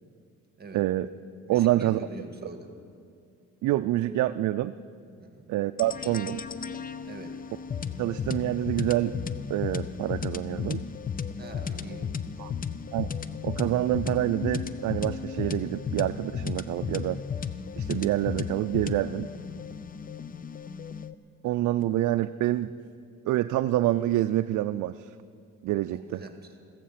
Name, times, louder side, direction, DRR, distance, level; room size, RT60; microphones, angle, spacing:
voice 1, 0.7-1.1 1.5-2.0 3.6-4.7 5.5-6.4 8.0-9.1 9.5-10.8 12.4-12.5 12.9-13.1 13.4-17.2 17.8-19.3 21.4-22.7 23.2-25.1 25.6-26.2, right 14 dB, 75° right, 10 dB, 0.4 m, -27 dB
voice 2, 1.5-2.7 5.2-5.5 7.0-7.4 11.4-12.6 25.9-26.4, right 3 dB, 30° right, 5 dB, 1.8 m, -44 dB
sound 1, 5.8-21.1, left 6 dB, 30° left, 0.6 m, -34 dB
15.5 x 14.5 x 5.8 m, 2.4 s
cardioid pair, 90°, 30 cm